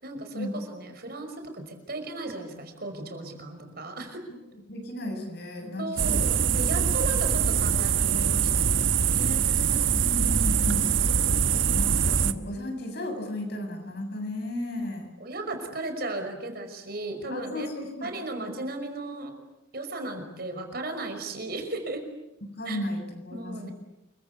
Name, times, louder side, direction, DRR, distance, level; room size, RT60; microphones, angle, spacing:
voice 1, 0.0-4.2 5.8-10.0 15.2-17.7 18.0-19.3 19.7-22.0 22.7-22.8 23.3-23.7, right 2 dB, 50° right, 5 dB, 5.7 m, -36 dB
voice 2, 4.7-6.6 9.9-15.1 17.3-18.1 22.4-23.7, left 1 dB, 55° left, 5 dB, 7.5 m, -35 dB
sound 1, 6.0-12.3, right 7 dB, 75° right, 1.2 m, -23 dB
29.0 x 23.5 x 8.3 m, 0.88 s
head